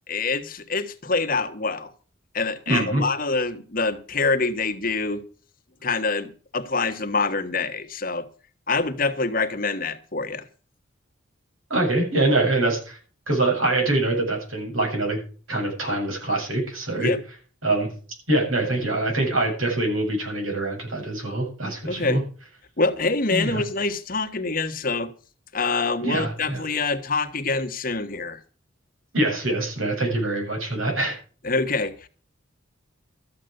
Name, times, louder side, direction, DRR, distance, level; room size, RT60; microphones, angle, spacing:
voice 1, 0.1-1.9 2.3-5.2 5.8-8.3 8.7-10.5 17.0-17.2 21.9-22.2 22.8-25.1 25.5-28.4 31.4-32.1, left 3 dB, 45° left, 1.4 m, -25 dB
voice 2, 2.7-3.0 11.7-13.0 13.3-15.2 15.5-17.1 17.6-17.9 18.3-22.2 23.3-23.6 26.0-26.6 29.1-31.2, right 2 dB, 85° right, 7.6 m, -24 dB
13.5 x 8.6 x 6.6 m
head